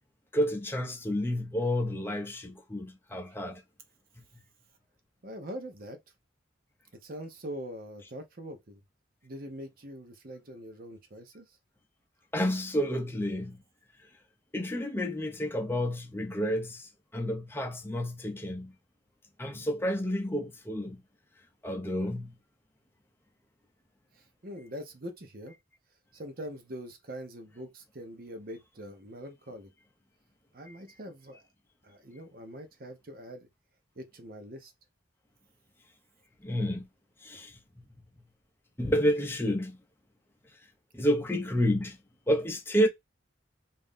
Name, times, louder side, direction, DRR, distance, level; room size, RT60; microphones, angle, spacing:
voice 1, 0.3-3.6 12.3-13.6 14.5-18.7 19.4-21.0 21.6-22.4 30.7-30.8 36.4-36.9 37.2-37.6 38.8-39.8 40.9-42.0 42.3-42.9, equal, 10° left, 0.6 m, -30 dB
voice 2, 5.2-6.0 7.0-8.8 9.2-11.5 24.4-25.5 26.1-29.7 30.5-31.4 31.8-33.5 34.0-34.7, equal, 50° right, 0.8 m, -43 dB
3.0 x 2.6 x 3.6 m
head